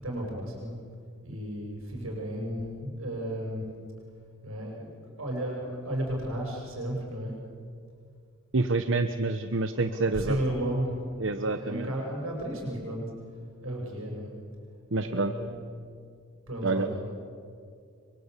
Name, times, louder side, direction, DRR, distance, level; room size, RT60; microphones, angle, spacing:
voice 1, 0.0-0.7 1.2-3.7 4.4-7.4 9.3-11.0 11.5-14.3 14.9-15.5 16.5-17.0, right 1 dB, 85° right, 0 dB, 7.3 m, -34 dB
voice 2, 8.5-10.4 11.2-11.9 14.9-15.3 16.6-16.9, right 3 dB, 65° right, 9 dB, 0.9 m, -27 dB
28.0 x 24.5 x 8.3 m, 2.3 s
head